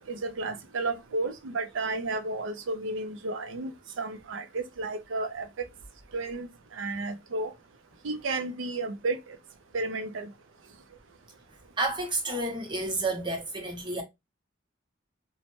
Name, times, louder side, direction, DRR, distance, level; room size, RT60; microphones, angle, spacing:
voice 1, 0.1-3.7 4.0-5.5 6.1-7.5 8.0-9.2 9.7-10.3, right 2 dB, 75° right, 0.5 m, -32 dB
voice 2, 11.8-14.0, right 2 dB, 25° right, 0.7 m, -30 dB
3.1 x 2.1 x 2.9 m
head